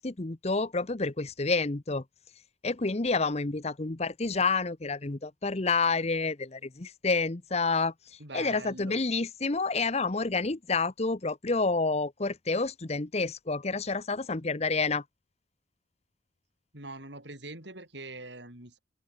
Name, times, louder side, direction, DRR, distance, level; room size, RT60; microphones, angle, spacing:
voice 1, 0.0-2.0 2.6-7.9 8.3-15.0, left 3 dB, 35° left, 0.9 m, -29 dB
voice 2, 8.2-9.0 16.7-18.8, right 2 dB, 65° right, 7.8 m, -43 dB
open air
head